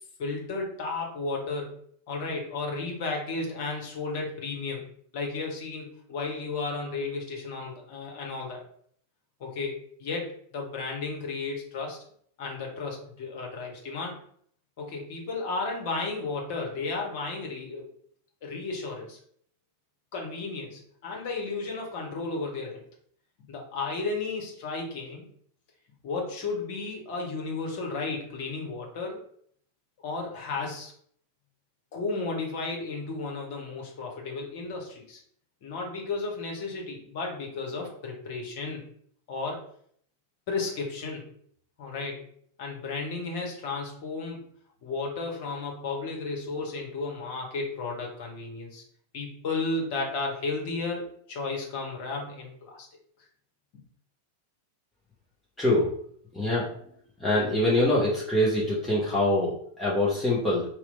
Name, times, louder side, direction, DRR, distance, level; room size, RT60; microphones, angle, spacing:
voice 1, 0.2-1.8 2.1-4.8 5.1-8.6 9.4-10.3 10.5-12.0 12.4-14.2 14.8-17.9 18.4-19.2 20.1-22.9 23.5-25.3 26.0-29.2 30.0-30.9 31.9-35.2 35.6-38.8 39.3-39.6 40.5-41.3 41.8-42.2 42.6-44.4 44.8-48.8 49.1-52.9, left 3 dB, 50° left, 1 dB, 0.9 m, -33 dB
voice 2, 55.6-55.9 56.3-56.7 57.2-60.7, left 1 dB, 10° left, -7 dB, 0.8 m, -24 dB
2.9 x 2.1 x 3.9 m, 0.62 s
figure-of-eight pair, 90°, 0 cm